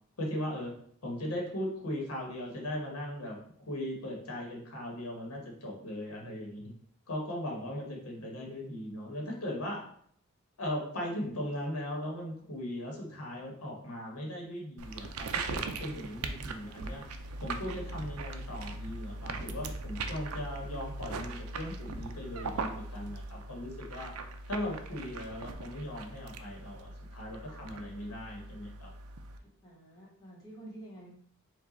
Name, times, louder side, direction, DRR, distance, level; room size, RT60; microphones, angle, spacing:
voice 1, 0.2-0.7 1.0-3.4 3.7-6.7 7.1-9.8 10.6-17.0 17.4-24.1 24.5-28.9, left 1 dB, 75° left, 0 dB, 1.0 m, -38 dB
sound 1, 14.8-29.4, right 3 dB, 75° right, 0.4 m, -40 dB
voice 2, 29.4-31.1, right 1 dB, 15° left, -6 dB, 1.2 m, -49 dB
4.8 x 2.3 x 4.0 m, 0.63 s
head